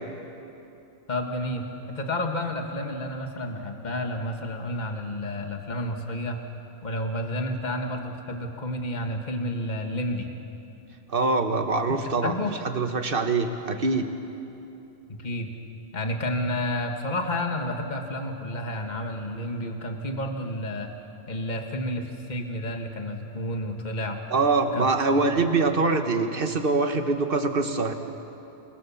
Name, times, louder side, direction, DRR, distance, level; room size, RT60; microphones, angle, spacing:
voice 1, 1.1-6.4 6.8-10.3 11.9-12.5 15.1-15.5 15.9-20.9 21.3-24.2 24.7-24.9, left 1 dB, 35° left, 4 dB, 1.8 m, -30 dB
voice 2, 11.1-12.3 12.6-14.1 24.3-27.9, right 3 dB, 45° right, 6 dB, 1.6 m, -24 dB
28.5 x 19.5 x 7.2 m, 2.9 s
omnidirectional pair, 1.3 m